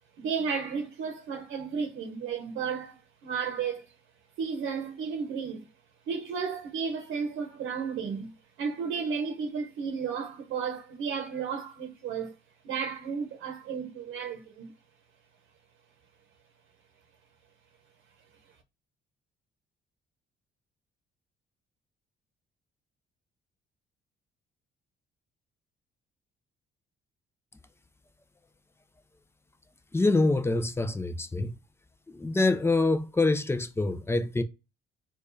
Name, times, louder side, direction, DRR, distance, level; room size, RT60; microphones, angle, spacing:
voice 1, 0.2-3.9 4.4-5.7 6.1-8.3 8.6-12.4 12.6-14.7, right 6 dB, 80° right, 0.8 m, -33 dB
voice 2, 29.9-31.5 32.1-34.4, left 2 dB, 10° left, 0.5 m, -25 dB
4.7 x 2.4 x 2.6 m
cardioid pair, 90°, 20 cm